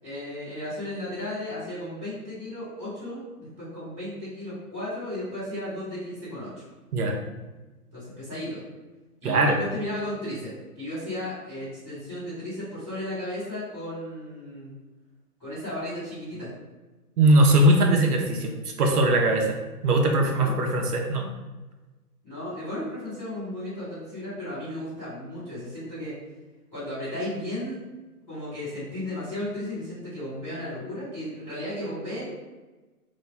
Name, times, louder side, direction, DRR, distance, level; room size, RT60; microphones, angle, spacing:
voice 1, 0.0-6.7 7.9-8.6 9.2-14.7 15.4-16.5 20.4-20.6 22.2-26.2 26.7-27.8 28.3-32.3, left 1 dB, ahead, -27 dB, 0.4 m, -34 dB
voice 2, 9.2-9.6 17.2-18.5 18.8-19.6 19.8-21.3, right 1 dB, 75° right, 2 dB, 0.8 m, -20 dB
3.0 x 2.2 x 4.1 m, 1.2 s
hypercardioid pair, 145°, 46 cm